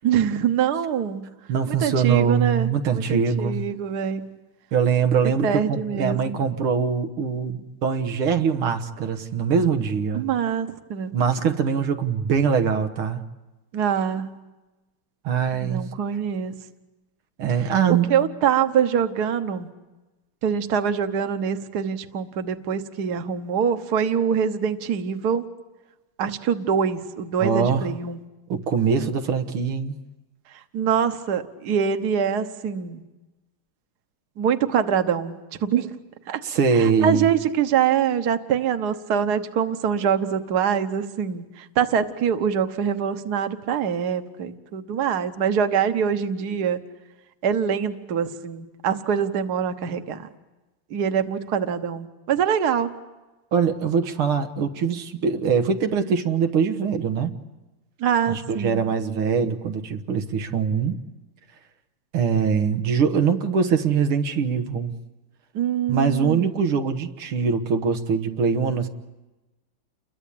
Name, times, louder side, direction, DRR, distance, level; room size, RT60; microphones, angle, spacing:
voice 1, 0.0-1.3 1.7-4.3 5.4-6.4 10.1-11.1 13.7-14.4 15.5-16.6 17.6-19.7 20.4-25.5 26.2-28.2 30.5-33.0 34.4-35.9 36.3-36.4 36.7-46.8 47.4-50.3 50.9-52.9 58.0-58.8 65.5-66.5, right 8 dB, 55° right, 1.6 m, -24 dB
voice 2, 1.5-3.6 4.7-10.3 11.1-13.2 15.2-15.8 17.4-18.2 27.4-27.9 28.5-30.0 36.4-37.3 53.5-57.4 58.3-61.0 62.1-65.0 65.9-68.9, right 6 dB, 90° right, 2.2 m, -23 dB
29.5 x 22.5 x 8.6 m
omnidirectional pair, 2.3 m